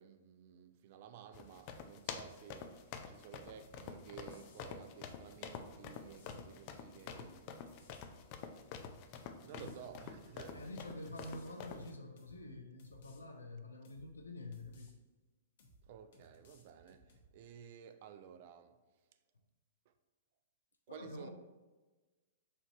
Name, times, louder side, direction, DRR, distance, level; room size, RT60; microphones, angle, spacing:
voice 1, 0.0-7.8 9.4-10.6 15.8-19.1 19.9-20.0 20.9-21.3, right 8 dB, 50° right, 0.4 m, -54 dB
sound 1, 1.3-11.9, left 6 dB, 45° left, 0.4 m, -48 dB
sound 2, 3.6-3.9 4.3-4.7 5.3-6.4 7.0-7.3 7.7-8.1 8.7-9.0 9.5-10.7 11.1-11.5 12.2-12.4 12.8-13.2 13.8-14.1 14.5-14.9 15.6-15.9 16.1-17.3, equal, 60° left, 0.9 m, -64 dB
voice 2, 10.5-14.9 20.9-21.3, left 2 dB, 90° left, 0.6 m, -48 dB
4.3 x 2.6 x 4.5 m
hypercardioid pair, 115°, 0 cm